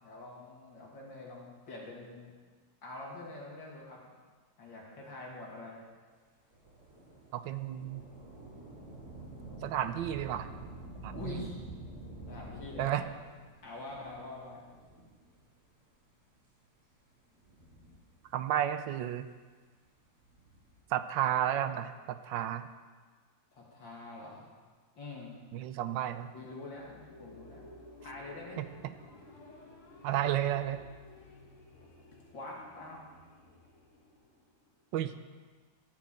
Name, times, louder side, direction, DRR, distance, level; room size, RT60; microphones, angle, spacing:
voice 1, 0.0-2.3 2.8-4.0 4.6-5.8 11.1-11.6 12.3-13.1 13.6-14.6 23.5-24.5 24.9-25.3 26.3-27.6 28.0-28.6 32.3-33.0, left 2 dB, 75° left, -3 dB, 3.2 m, -45 dB
Thunder / Rain, 6.5-15.5 16.2-16.3 17.2-18.5 20.0-20.8, right 1 dB, 55° right, 3.8 m, -49 dB
voice 2, 7.3-8.0 9.6-10.5 11.0-11.5 12.8-13.0 18.3-19.3 20.9-22.7 25.5-26.3 28.6-28.7 30.0-30.8 34.9-35.1, right 11 dB, 80° right, 11 dB, 1.3 m, -32 dB
sound 1, 26.4-35.0, left 2 dB, 40° left, 1.7 m, -54 dB
12.5 x 6.1 x 8.6 m, 1.4 s
omnidirectional pair, 2.0 m